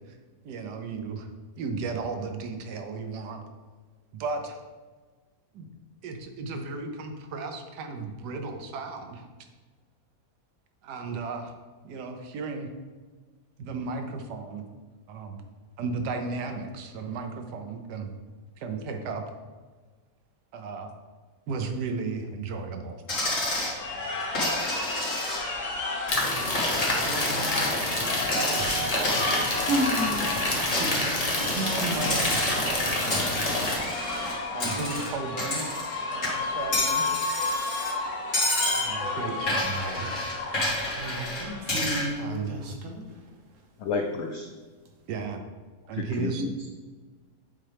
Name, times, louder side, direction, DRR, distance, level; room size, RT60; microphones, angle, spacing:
voice 1, 0.4-1.3 1.6-3.4 4.1-4.6 5.5-5.7 6.0-9.3 10.8-11.5 11.8-12.7 13.6-14.6 15.1-15.4 15.8-18.1 18.6-19.2 20.5-20.9 21.5-23.0 31.5-33.0 34.5-35.7 36.1-37.1 38.7-40.2 42.2-42.7 45.1-45.4 45.9-46.5, right 4 dB, 80° right, 5 dB, 1.3 m, -34 dB
Coin (dropping), 23.1-23.8 24.4-25.7 26.0-27.7 28.3-30.3 30.7-32.7 33.1-36.0 36.2-37.9 38.3-38.9 39.5-42.1, left 1 dB, 50° left, 2.2 m, -30 dB
sound 1, 23.7-41.7, left 3 dB, 65° left, 1.3 m, -33 dB
sound 2, 26.1-33.8, left 1 dB, 30° left, 0.8 m, -28 dB
voice 2, 27.0-28.0 29.2-31.0 40.9-43.0, right 1 dB, 55° right, 1 dB, 1.2 m, -33 dB
voice 3, 43.8-44.5 45.9-46.7, left 4 dB, 85° left, 3 dB, 0.6 m, -31 dB
7.4 x 4.3 x 3.4 m, 1.4 s
omnidirectional pair, 1.8 m